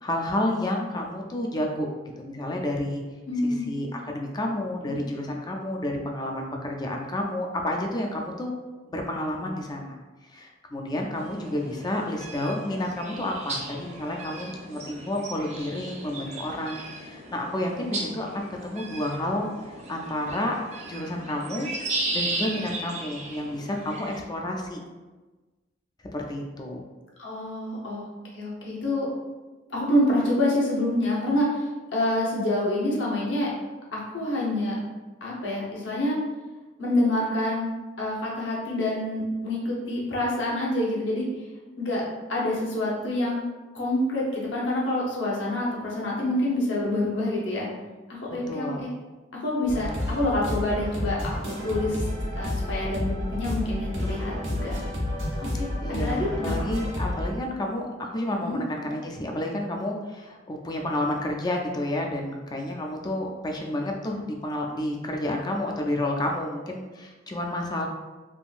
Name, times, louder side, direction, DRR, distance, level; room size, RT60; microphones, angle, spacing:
voice 1, 0.0-1.9 2.2-3.0 3.4-8.5 8.9-20.6 20.9-21.7 22.1-24.8 26.1-26.8 48.5-48.9 55.5-67.9, left 1 dB, 20° left, 1 dB, 0.4 m, -30 dB
voice 2, 3.3-3.7 4.8-5.0 27.2-28.0 28.3-29.1 29.7-33.5 33.9-34.7 35.2-36.2 36.8-37.7 38.0-41.3 41.8-42.0 42.3-43.4 43.7-47.7 48.1-48.9 49.4-52.0 52.4-54.8 55.4-56.5 58.4-58.6, left 1 dB, 70° left, -4 dB, 0.9 m, -27 dB
sound 1, 11.2-24.2, right 2 dB, 35° right, 0.5 m, -36 dB
sound 2, 49.7-57.3, left 1 dB, 90° right, 1.3 m, -30 dB
3.5 x 2.5 x 2.4 m, 1.2 s
head